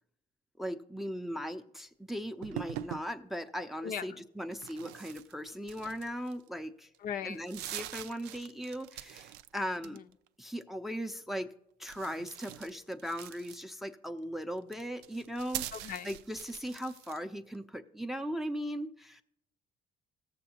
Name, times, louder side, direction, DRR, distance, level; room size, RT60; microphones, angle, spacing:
voice 1, 0.6-6.9 7.2-10.0 10.4-11.5 11.8-15.7 16.0-19.2, equal, ahead, 6 dB, 0.5 m, -38 dB
sound 1, 2.4-3.1 4.5-6.5 6.9-7.0 7.3-9.5 9.7-10.3 11.8-13.9 14.6-17.2, right 12 dB, 90° right, 0.4 m, -43 dB
voice 2, 3.8-4.3 7.0-7.4 9.8-10.0 15.7-16.1, left 8 dB, 60° left, 9 dB, 0.6 m, -39 dB
17.5 x 6.9 x 2.8 m, 0.81 s
cardioid pair, 110°, 17 cm